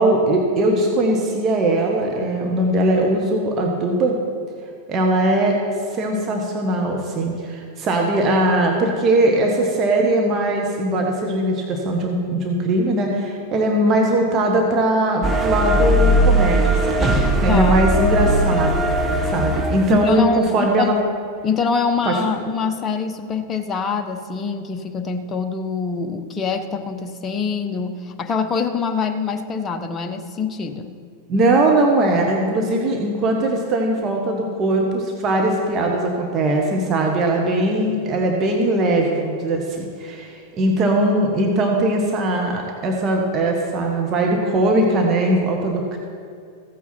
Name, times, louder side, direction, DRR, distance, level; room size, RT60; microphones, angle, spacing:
voice 1, 0.0-4.2 4.9-5.5 5.9-18.7 19.3-21.0 22.0-22.2 31.3-46.0, right 1 dB, 30° right, 1 dB, 1.3 m, -20 dB
sound 1, 15.2-20.2, right 1 dB, 10° right, 1.1 m, -19 dB
voice 2, 17.5-17.8 19.9-21.0 21.4-30.9, left 5 dB, 25° left, 7 dB, 0.9 m, -24 dB
15.0 x 8.5 x 4.4 m, 2.3 s
figure-of-eight pair, 90°, 0 cm